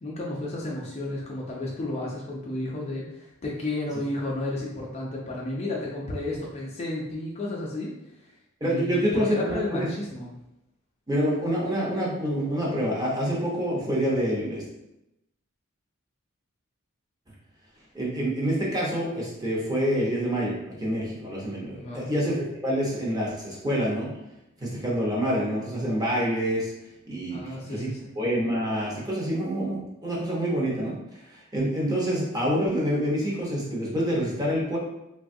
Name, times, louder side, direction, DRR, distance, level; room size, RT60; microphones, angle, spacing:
voice 1, 0.0-7.9 8.2-8.3 8.6-10.3 21.7-22.1 27.3-28.1, left 1 dB, 30° left, -3 dB, 0.4 m, -32 dB
voice 2, 8.6-9.9 11.1-14.6 17.9-22.3 22.6-24.1 24.6-26.7 27.1-27.9 28.2-31.0 31.5-34.8, equal, 20° right, -5 dB, 0.7 m, -27 dB
3.2 x 2.3 x 2.6 m, 0.88 s
head